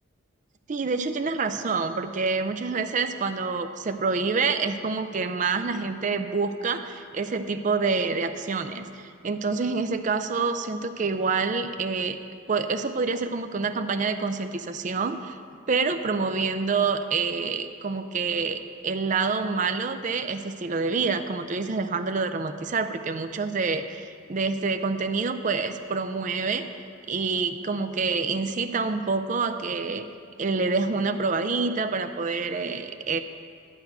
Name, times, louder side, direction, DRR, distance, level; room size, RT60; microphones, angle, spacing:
voice 1, 0.7-12.2 12.5-15.4 15.7-26.7 27.1-30.0 30.4-33.2, right 4 dB, 40° right, 8 dB, 0.4 m, -27 dB
11.5 x 4.7 x 8.0 m, 2.2 s
head